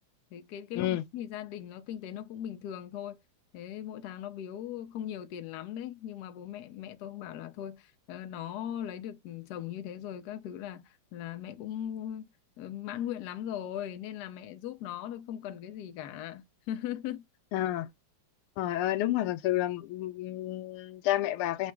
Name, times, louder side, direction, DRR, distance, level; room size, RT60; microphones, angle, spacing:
voice 1, 0.3-3.2 3.5-12.3 12.6-17.2, left 10 dB, 70° left, 1.0 m, -39 dB
voice 2, 17.5-17.9 18.6-21.7, left 14 dB, 90° left, 1.5 m, -30 dB
4.1 x 2.1 x 4.5 m
omnidirectional pair, 2.3 m